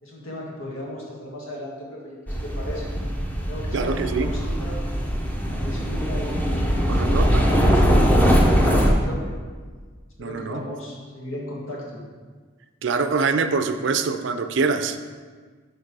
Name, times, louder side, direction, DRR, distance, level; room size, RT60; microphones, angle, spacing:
voice 1, 0.0-2.9 3.5-4.8 5.5-8.2 8.5-9.3 10.2-12.0, left 1 dB, 80° left, -3 dB, 1.8 m, -36 dB
sound 1, 2.3-8.9, equal, 10° left, 0.6 m, -21 dB
voice 2, 3.7-4.3 6.9-7.7 10.2-10.6 12.8-15.0, right 4 dB, 60° right, 9 dB, 0.4 m, -24 dB
6.5 x 5.3 x 4.7 m, 1.5 s
head